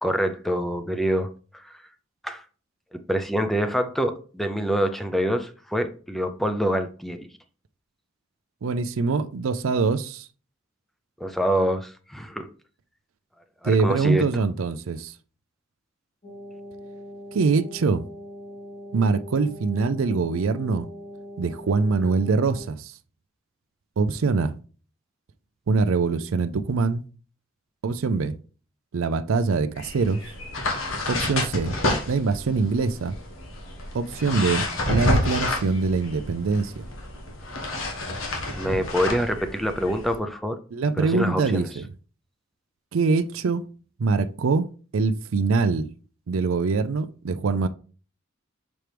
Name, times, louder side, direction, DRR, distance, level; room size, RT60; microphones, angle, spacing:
voice 1, 0.0-1.7 2.2-2.4 2.9-7.2 11.2-12.5 13.6-14.2 38.6-40.6 41.0-41.7, equal, ahead, 0.5 m, -26 dB
voice 2, 8.6-10.3 13.6-15.1 17.3-18.0 18.9-20.9 21.4-22.9 24.0-24.5 25.7-27.0 27.8-28.3 28.9-30.2 31.1-31.8 32.1-33.2 33.9-36.9 40.7-41.9 42.9-43.6 44.0-44.7 44.9-45.9 46.3-47.7, right 4 dB, 90° right, 0.5 m, -23 dB
sound 1, 16.2-22.7, equal, 35° left, 1.5 m, -41 dB
sound 2, 29.8-40.2, left 1 dB, 85° left, 1.5 m, -29 dB
6.2 x 4.5 x 3.4 m
head